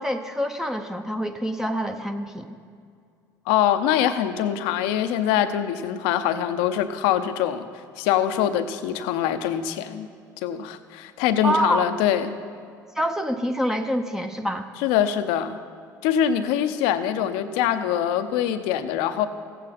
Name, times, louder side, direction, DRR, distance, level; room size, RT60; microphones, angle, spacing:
voice 1, 0.0-2.5 11.4-11.8 13.0-14.7, equal, 5° right, 6 dB, 0.7 m, -26 dB
voice 2, 3.5-7.7 8.0-10.1 10.4-12.3 14.8-15.6 16.0-19.3, left 10 dB, 70° left, 10 dB, 0.7 m, -23 dB
15.0 x 9.2 x 4.2 m, 2.3 s
hypercardioid pair, 65°, 10 cm